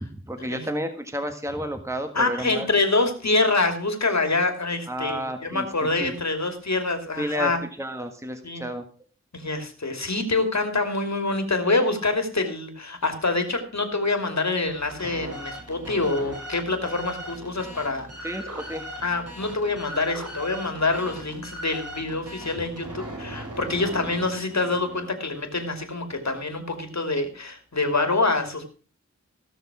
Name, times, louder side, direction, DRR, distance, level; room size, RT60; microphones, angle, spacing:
voice 1, 0.0-2.7 4.9-5.7 6.0-6.1 7.2-7.5 7.8-8.8 18.2-18.8, equal, 10° right, 6 dB, 1.6 m, -31 dB
voice 2, 2.1-7.6 8.4-8.6 9.3-18.4 19.0-28.7, left 3 dB, 70° left, 6 dB, 2.8 m, -26 dB
sound 1, 14.7-25.2, right 1 dB, 55° right, 6.1 m, -39 dB
17.0 x 6.6 x 6.1 m, 0.40 s
wide cardioid pair, 50°, 29 cm